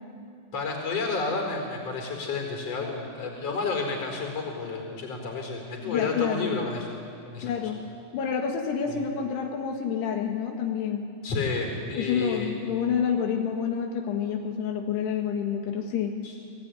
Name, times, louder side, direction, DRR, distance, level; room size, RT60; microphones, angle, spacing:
voice 1, 0.5-7.5 8.9-9.0 11.2-12.5, left 4 dB, 40° left, 2 dB, 5.6 m, -31 dB
voice 2, 5.8-6.6 7.4-7.8 8.1-11.1 12.0-16.2, left 7 dB, 85° left, 2 dB, 3.7 m, -28 dB
27.5 x 19.5 x 9.8 m, 2.4 s
omnidirectional pair, 4.6 m